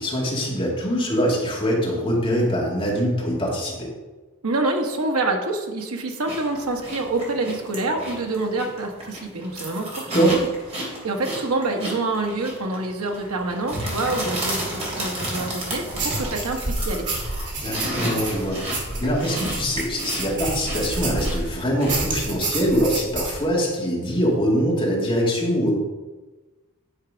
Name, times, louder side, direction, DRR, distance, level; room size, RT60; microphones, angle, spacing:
voice 1, 0.0-3.9 10.1-10.3 17.6-18.6 19.0-25.7, equal, 25° left, -4 dB, 2.2 m, -23 dB
voice 2, 4.4-10.5 10.8-17.1, right 2 dB, 75° right, 2 dB, 1.2 m, -27 dB
sound 1, 6.3-22.3, right 1 dB, 30° right, 3.0 m, -32 dB
sound 2, 15.9-21.5 21.9-23.4, right 2 dB, 55° right, 2.5 m, -29 dB
10.5 x 4.7 x 5.1 m, 1.2 s
head